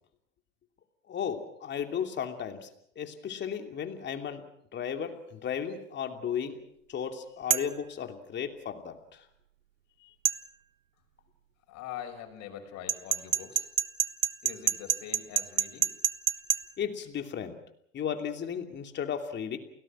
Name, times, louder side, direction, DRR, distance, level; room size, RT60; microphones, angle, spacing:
voice 1, 1.1-2.7 3.0-4.4 4.7-9.3 10.0-10.1 16.8-17.6 17.9-19.6, left 8 dB, 30° left, 6 dB, 2.9 m, -35 dB
sound 1, 7.5-7.8 10.3-10.4 12.9-16.6, right 10 dB, 85° right, 1.0 m, -26 dB
voice 2, 11.7-13.7 14.4-15.9, left 9 dB, 45° left, 4 dB, 6.1 m, -43 dB
29.0 x 18.5 x 6.2 m, 0.72 s
hypercardioid pair, 100°, 39 cm